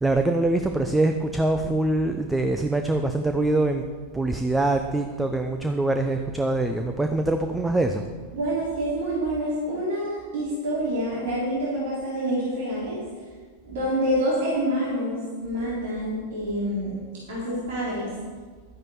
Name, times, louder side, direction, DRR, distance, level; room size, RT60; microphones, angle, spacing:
voice 1, 0.0-3.8 4.1-8.0, right 2 dB, 5° right, 6 dB, 0.7 m, -24 dB
voice 2, 8.3-13.0 13.6-16.9 17.3-18.1, equal, 55° right, -8 dB, 3.7 m, -27 dB
12.5 x 9.7 x 4.5 m, 1.5 s
figure-of-eight pair, 90°, 0 cm